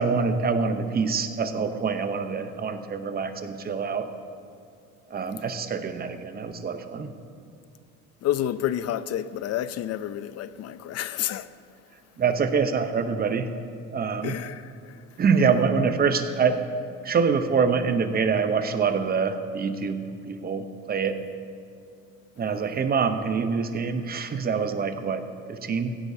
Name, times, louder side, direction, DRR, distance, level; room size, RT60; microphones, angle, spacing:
voice 1, 0.0-4.1 5.1-7.1 12.2-13.5 13.9-14.3 15.2-16.6 17.0-21.2 22.4-25.2 25.5-26.0, right 5 dB, 30° right, 0.8 m, -25 dB
voice 2, 8.2-11.4 14.2-14.6, left 11 dB, 50° left, 0.5 m, -29 dB
16.0 x 15.0 x 2.8 m
cardioid pair, 125°, 32 cm